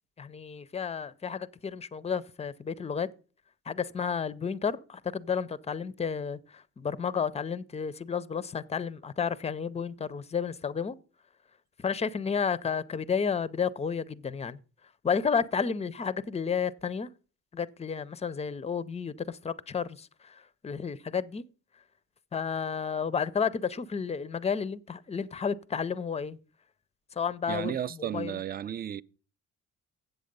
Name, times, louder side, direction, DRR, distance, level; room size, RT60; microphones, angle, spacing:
voice 1, 0.2-3.1 3.7-11.0 11.8-14.6 15.0-17.1 17.5-21.4 22.3-26.4 27.2-27.7 28.0-28.4, left 6 dB, 20° left, 0.5 m, -31 dB
voice 2, 27.5-29.0, right 10 dB, 30° right, 0.4 m, -33 dB
7.9 x 7.6 x 5.2 m
cardioid pair, 90°, 30 cm